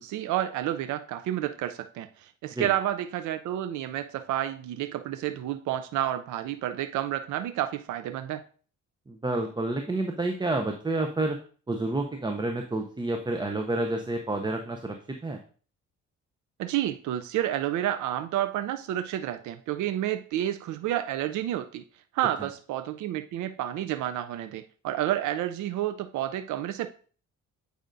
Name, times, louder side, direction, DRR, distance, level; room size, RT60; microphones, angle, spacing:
voice 1, 0.0-8.4 16.6-21.8 22.1-26.9, right 12 dB, 75° right, 0.5 m, -30 dB
voice 2, 9.1-11.4 11.7-15.0 15.2-15.4, right 2 dB, 15° right, 0.6 m, -29 dB
8.8 x 5.1 x 2.6 m
cardioid pair, 90°, 30 cm